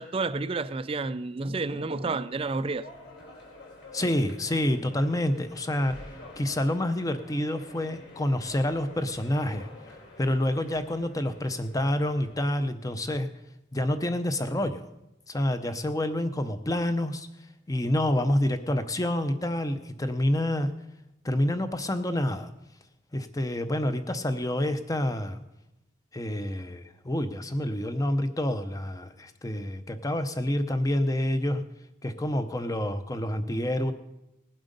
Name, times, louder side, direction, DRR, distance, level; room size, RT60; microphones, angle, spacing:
voice 1, 0.0-2.9, right 3 dB, 25° right, 0.4 m, -30 dB
sound 1, 2.3-12.4, left 2 dB, 65° left, 4.0 m, -48 dB
voice 2, 3.9-6.0 6.4-9.7 10.2-13.3 13.7-14.9 15.3-17.3 17.7-20.7 21.2-22.5 23.1-25.4 26.1-31.6 32.0-33.9, left 1 dB, 15° left, 0.7 m, -28 dB
19.0 x 7.7 x 5.3 m
head